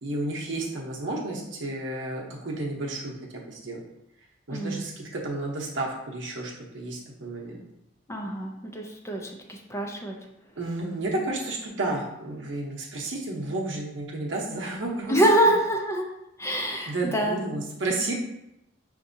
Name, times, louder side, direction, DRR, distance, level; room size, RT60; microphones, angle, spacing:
voice 1, 0.0-3.8 4.5-7.6 10.6-15.2 16.9-18.1, right 2 dB, 80° right, -1 dB, 0.8 m, -32 dB
voice 2, 4.5-4.9 8.1-10.1 15.1-16.0 16.4-17.4, right 1 dB, 15° left, 1 dB, 0.5 m, -25 dB
5.8 x 2.6 x 2.6 m, 0.84 s
head